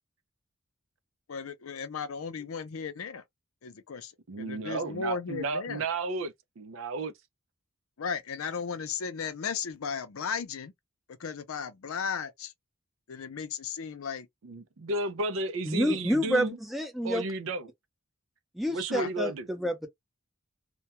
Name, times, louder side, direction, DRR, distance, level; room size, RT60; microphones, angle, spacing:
voice 1, 1.3-3.2 3.6-4.1 4.4-5.8 8.0-10.7 11.2-12.5 13.1-14.3 18.9-19.1, left 6 dB, 90° left, 0.5 m, -35 dB
voice 2, 4.3-7.1 14.4-16.6 17.0-17.7 18.6-19.5, right 2 dB, 70° right, 0.5 m, -33 dB
voice 3, 15.7-17.2 18.6-19.9, equal, ahead, 0.5 m, -28 dB
2.2 x 2.2 x 2.8 m
head